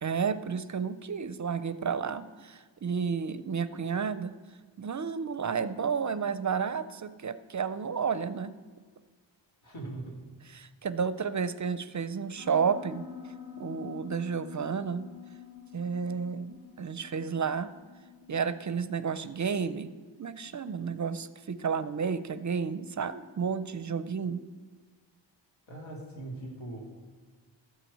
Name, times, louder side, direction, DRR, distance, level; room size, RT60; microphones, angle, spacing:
voice 1, 0.0-4.3 4.8-8.5 10.5-13.1 13.6-15.1 15.7-17.7 18.3-19.9 20.2-24.4, right 6 dB, 40° right, 14 dB, 0.4 m, -31 dB
voice 2, 9.6-10.2 25.7-26.9, right 2 dB, 90° left, -2 dB, 3.0 m, -40 dB
Piano, 12.4-18.6, left 8 dB, 40° left, 1.7 m, -47 dB
13.0 x 6.1 x 8.3 m, 1.5 s
wide cardioid pair, 145°, 46 cm